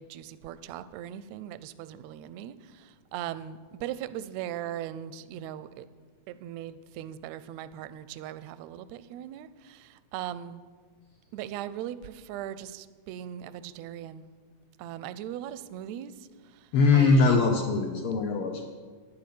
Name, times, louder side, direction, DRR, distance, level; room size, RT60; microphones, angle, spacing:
voice 1, 0.0-5.9 6.3-10.6 11.3-14.2 14.8-17.4, right 11 dB, 80° right, 14 dB, 1.7 m, -39 dB
voice 2, 16.7-18.8, left 4 dB, 80° left, 4 dB, 1.2 m, -22 dB
10.5 x 7.8 x 8.4 m, 1.5 s
omnidirectional pair, 3.5 m